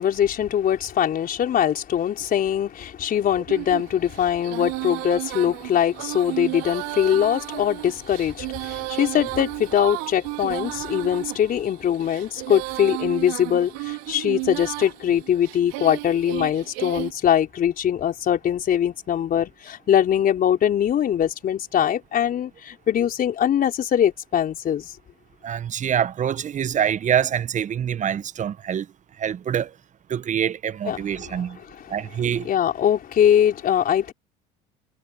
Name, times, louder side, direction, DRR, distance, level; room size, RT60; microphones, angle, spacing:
voice 1, 0.0-24.9 30.9-31.0 32.4-34.1, left 9 dB, 45° left, 4.5 m, -22 dB
Female singing, 3.5-17.1, right 27 dB, 70° right, 3.3 m, -33 dB
voice 2, 25.4-28.9 29.2-29.7 30.1-31.6 31.9-32.5, right 9 dB, 35° right, 1.1 m, -25 dB
hypercardioid pair, 80°, 21 cm